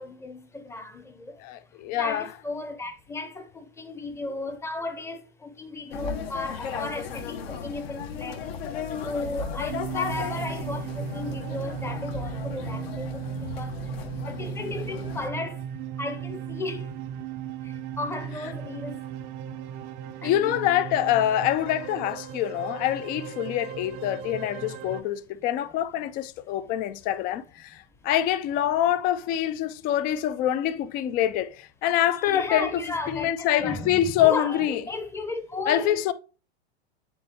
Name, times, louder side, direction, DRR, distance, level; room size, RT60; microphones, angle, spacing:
voice 1, 0.0-1.3 2.0-8.5 9.0-13.2 13.5-13.7 14.2-15.6 16.0-16.9 18.0-19.0 20.2-20.5 32.2-36.1, left 2 dB, 10° left, 0.7 m, -35 dB
voice 2, 1.4-2.3 20.2-27.8 28.0-32.7 33.1-34.8 35.7-36.1, left 12 dB, 30° left, 0.4 m, -25 dB
sound 1, 5.9-15.3, left 6 dB, 65° left, 1.1 m, -35 dB
sound 2, 9.7-25.0, right 9 dB, 50° right, 0.5 m, -36 dB
9.6 x 3.4 x 2.9 m
hypercardioid pair, 110°, 32 cm